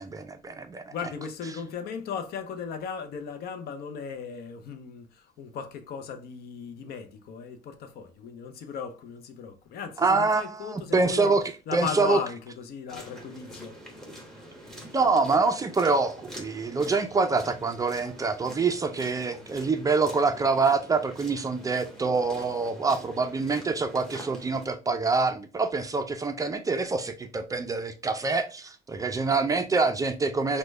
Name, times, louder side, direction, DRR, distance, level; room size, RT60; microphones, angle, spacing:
voice 1, 0.0-0.8 10.0-11.4 11.7-12.2 14.9-30.6, right 4 dB, 20° right, 0.3 m, -25 dB
voice 2, 0.9-11.3 11.7-13.8, left 6 dB, 65° left, 0.6 m, -37 dB
sound 1, 12.9-24.7, equal, ahead, 1.0 m, -46 dB
3.1 x 2.1 x 3.3 m
cardioid pair, 110°, 17 cm